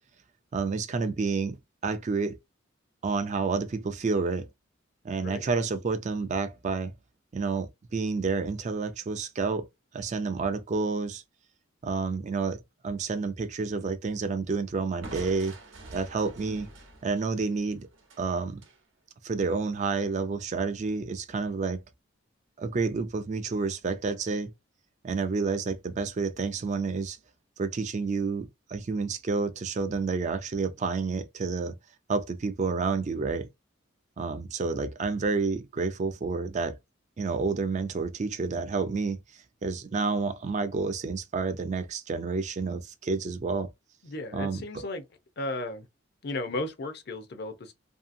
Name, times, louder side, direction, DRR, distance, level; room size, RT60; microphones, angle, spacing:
voice 1, 0.5-1.6 1.8-2.4 3.0-4.5 5.0-6.9 7.3-9.7 9.9-11.2 11.8-15.6 15.9-16.7 17.0-17.9 18.2-18.6 19.2-21.8 22.6-24.5 25.0-27.2 27.6-31.7 32.1-33.5 34.2-36.8 37.2-43.7 44.3-44.8, right 4 dB, 35° right, 0.4 m, -29 dB
Crushing, 15.0-18.8, right 2 dB, 80° right, 0.8 m, -46 dB
voice 2, 44.0-45.0 45.4-45.8 46.2-47.7, left 2 dB, 55° left, 0.6 m, -34 dB
2.7 x 2.6 x 2.5 m
head